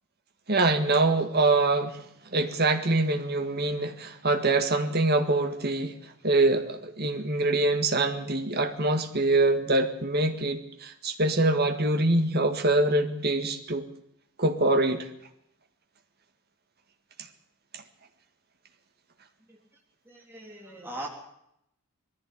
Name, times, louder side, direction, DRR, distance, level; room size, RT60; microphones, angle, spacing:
voice 1, 0.5-2.0 2.3-13.8 14.4-15.1 17.7-17.8, right 2 dB, 45° right, 1.9 m, -24 dB
voice 2, 20.1-21.1, right 1 dB, 10° right, 3.6 m, -40 dB
20.5 x 15.0 x 8.5 m
head